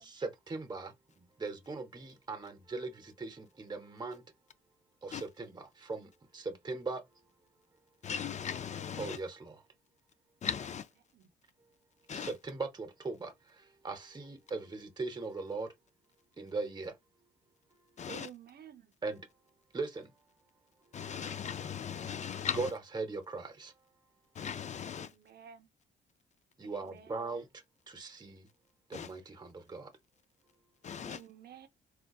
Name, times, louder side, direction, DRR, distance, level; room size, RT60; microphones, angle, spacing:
voice 1, 0.0-4.2 5.0-7.0 9.0-9.6 12.1-15.7 16.4-16.9 19.0-19.2 19.7-20.1 22.5-23.7 26.6-27.5 27.9-28.5 28.9-29.9, right 3 dB, 20° right, 0.8 m, -39 dB
voice 2, 8.0-9.2 10.4-10.9 12.1-12.3 18.0-18.3 20.9-22.7 24.4-25.1 28.9-29.1 30.8-31.2, left 7 dB, 35° left, 0.4 m, -38 dB
voice 3, 18.1-18.9 24.9-25.7 26.6-27.2 31.0-31.7, right 8 dB, 55° right, 0.7 m, -52 dB
3.8 x 2.2 x 2.3 m
cardioid pair, 90°, 20 cm